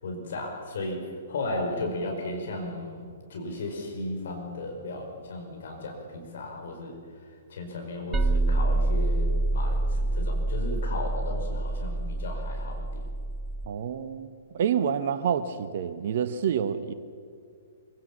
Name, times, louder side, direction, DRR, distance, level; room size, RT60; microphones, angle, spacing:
voice 1, 0.0-7.0 7.5-12.8, left 2 dB, 60° left, 2 dB, 4.9 m, -35 dB
sound 1, 8.1-13.7, right 2 dB, 15° right, 0.8 m, -27 dB
voice 2, 13.7-14.3 14.5-16.9, right 8 dB, 50° right, 11 dB, 1.2 m, -28 dB
26.0 x 17.5 x 7.2 m, 2.3 s
figure-of-eight pair, 115°, 0 cm